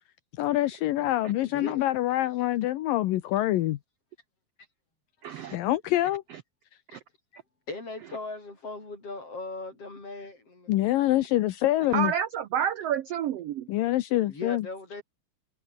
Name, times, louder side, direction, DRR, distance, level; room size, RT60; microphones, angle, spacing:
voice 1, 0.4-3.8 5.5-6.2 10.7-12.1 13.7-14.7, left 15 dB, 75° left, 2.6 m, -25 dB
voice 2, 1.5-1.8 5.3-5.4 6.9-7.0 7.3-7.4 7.7-10.9 14.3-15.0, left 3 dB, 40° left, 8.8 m, -39 dB
voice 3, 5.2-5.6 6.3-6.4 6.9-7.0 11.9-13.7, right 9 dB, 85° right, 1.3 m, -29 dB
omnidirectional pair, 4.1 m